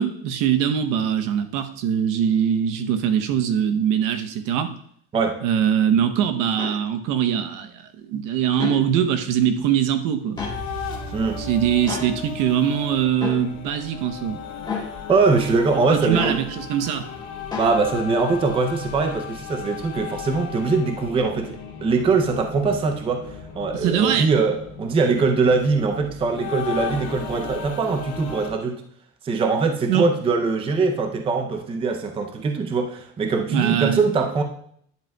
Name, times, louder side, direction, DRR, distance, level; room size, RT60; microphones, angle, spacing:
voice 1, 0.0-4.7 5.4-7.8 8.1-10.4 11.4-14.4 15.9-17.0 23.7-24.3 29.9-30.0 33.5-34.0, right 9 dB, 70° right, 8 dB, 0.8 m, -22 dB
sound 1, 6.6-6.8 8.5-8.8 10.4-10.6 11.9-12.1 13.2-13.4 14.6-14.9 16.1-16.4 17.5-17.7, left 4 dB, 10° left, 1.4 m, -29 dB
sound 2, 10.3-28.5, left 6 dB, 55° left, 2.1 m, -35 dB
voice 2, 15.1-16.4 17.6-28.8 29.2-34.4, right 4 dB, 15° right, 5 dB, 0.5 m, -22 dB
10.5 x 7.4 x 2.2 m, 0.65 s
cardioid pair, 165°, 33 cm